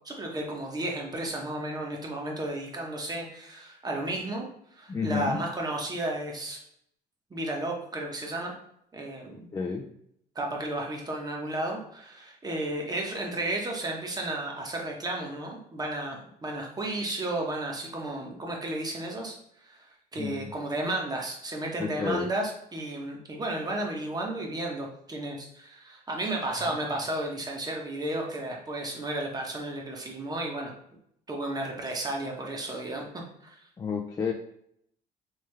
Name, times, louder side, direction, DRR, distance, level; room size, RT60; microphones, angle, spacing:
voice 1, 0.0-4.5 4.8-6.6 7.3-8.5 8.9-9.5 10.3-30.7 31.3-33.1 33.4-33.7, right 1 dB, 25° right, 0 dB, 1.0 m, -33 dB
voice 2, 4.9-5.4 9.5-9.9 20.2-20.5 21.8-22.3 26.7-26.8 33.8-34.3, left 5 dB, 20° left, 0 dB, 0.4 m, -31 dB
3.3 x 3.3 x 3.3 m, 0.71 s
cardioid pair, 110°, 17 cm